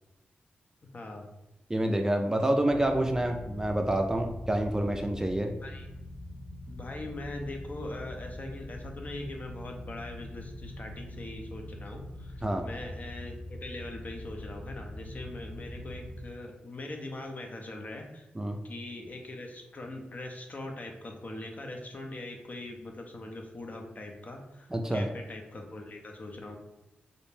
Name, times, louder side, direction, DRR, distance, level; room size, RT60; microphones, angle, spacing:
voice 1, 0.9-1.3 5.6-5.9 6.7-18.3 18.6-26.6, left 2 dB, 45° left, 2 dB, 0.5 m, -41 dB
voice 2, 1.7-5.5 12.4-12.6 18.4-18.6 24.7-25.1, right 1 dB, 15° right, 4 dB, 0.3 m, -27 dB
sound 1, 2.7-16.3, left 1 dB, 85° left, 0.7 m, -43 dB
2.5 x 2.1 x 3.2 m, 0.96 s
cardioid pair, 65°, 4 cm